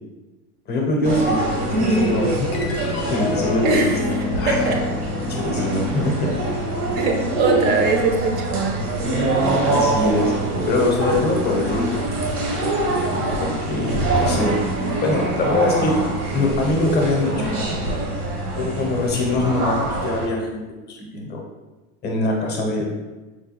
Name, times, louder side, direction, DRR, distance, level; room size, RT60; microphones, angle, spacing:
voice 1, 0.7-2.5 3.1-4.6 5.3-6.3 9.6-10.3 10.7-12.1 12.9-14.6 15.0-16.0 16.3-17.8 18.6-21.4 22.0-22.8, left 2 dB, 25° left, 0 dB, 0.7 m, -23 dB
sound 1, 1.0-20.3, right 2 dB, 90° right, 1.0 m, -24 dB
sound 2, 2.5-9.2, left 3 dB, 60° left, 0.6 m, -29 dB
voice 2, 3.6-3.9 4.5-4.8 6.9-8.8, right 4 dB, 25° right, 3 dB, 0.4 m, -21 dB
4.7 x 2.2 x 2.9 m, 1.2 s
hypercardioid pair, 120°, 44 cm